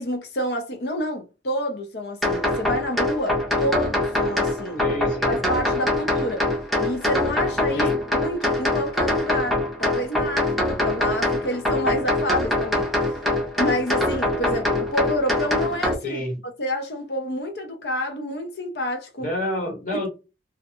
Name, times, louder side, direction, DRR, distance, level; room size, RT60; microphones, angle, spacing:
voice 1, 0.0-4.9 5.3-6.5 6.8-13.2 13.6-19.3, equal, 70° left, 0.6 m, -29 dB
sound 1, 2.2-15.9, left 1 dB, ahead, 0.5 m, -24 dB
voice 2, 4.8-5.4 7.7-8.0 16.0-16.4 19.2-20.1, left 1 dB, 45° left, 1.0 m, -28 dB
2.3 x 2.1 x 2.9 m
head